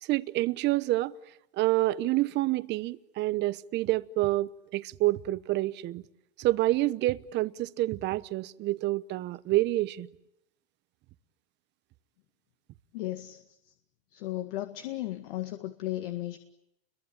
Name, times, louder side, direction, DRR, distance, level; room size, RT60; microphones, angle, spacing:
voice 1, 0.0-1.1 1.5-6.0 6.4-10.1, right 17 dB, 35° right, 1.0 m, -28 dB
voice 2, 12.9-13.7 14.1-16.4, left 15 dB, 65° left, 2.0 m, -35 dB
30.0 x 23.0 x 8.8 m
supercardioid pair, 130°, 31 cm